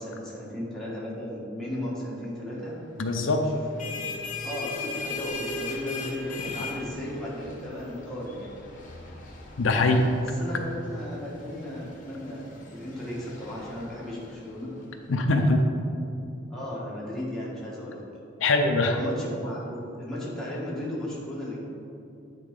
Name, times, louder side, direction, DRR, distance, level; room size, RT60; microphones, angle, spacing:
voice 1, 0.0-2.8 3.4-8.5 10.2-14.7 16.1-16.2 16.5-18.0 18.8-21.6, left 1 dB, ahead, -8 dB, 1.5 m, -35 dB
voice 2, 3.0-3.4 9.6-10.0 15.1-15.6 18.4-19.0, left 2 dB, 90° left, 4 dB, 0.6 m, -22 dB
sound 1, 3.5-14.9, left 3 dB, 45° left, 0.9 m, -39 dB
9.9 x 3.8 x 3.7 m, 2.7 s
head